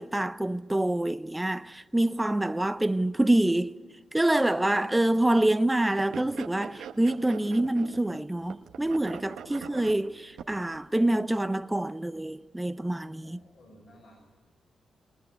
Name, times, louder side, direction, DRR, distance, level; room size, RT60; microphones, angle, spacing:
voice 1, 0.0-3.8 4.1-13.4, right 1 dB, 10° right, 0.6 m, -26 dB
sound 1, 6.0-8.2 8.5-10.8, right 7 dB, 90° right, 1.2 m, -43 dB
voice 2, 9.5-9.8 13.2-14.2, equal, 70° left, 7.2 m, -56 dB
21.5 x 19.5 x 9.5 m
cardioid pair, 70°, 0 cm